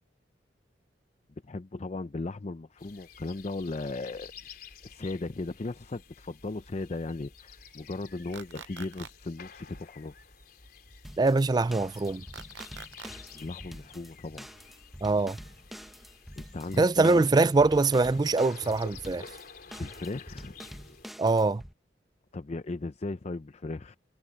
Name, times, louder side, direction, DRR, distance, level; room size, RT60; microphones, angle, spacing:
voice 1, 1.4-4.3 4.8-10.1 13.3-14.5 16.3-17.2 19.8-20.5 22.3-24.0, left 2 dB, 40° left, 0.5 m, -37 dB
sound 1, 2.8-21.1, left 4 dB, 55° left, 4.1 m, -50 dB
sound 2, 8.3-9.1 12.3-13.1, right 7 dB, 85° right, 0.6 m, -44 dB
sound 3, 11.0-21.7, equal, ahead, 1.1 m, -47 dB
voice 2, 11.2-12.2 15.0-15.4 16.8-19.3 21.2-21.6, right 3 dB, 25° right, 0.4 m, -23 dB
head